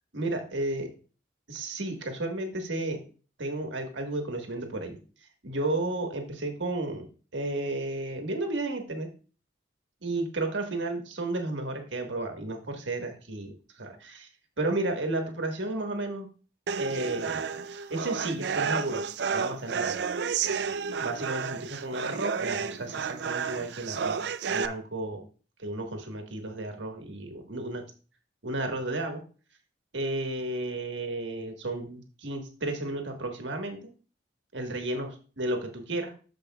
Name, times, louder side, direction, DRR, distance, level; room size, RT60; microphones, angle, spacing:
voice 1, 0.1-0.9 1.5-3.0 3.4-5.0 5.4-7.1 7.3-9.1 10.0-14.3 14.6-16.3 16.8-17.5 17.9-20.0 21.0-24.2 24.5-25.2 25.6-27.8 28.4-29.2 29.9-33.9 34.5-36.1, right 2 dB, 80° right, 4 dB, 1.5 m, -32 dB
sound 1, 16.7-24.7, right 6 dB, 65° right, 0.4 m, -31 dB
13.0 x 5.0 x 2.3 m, 0.37 s
head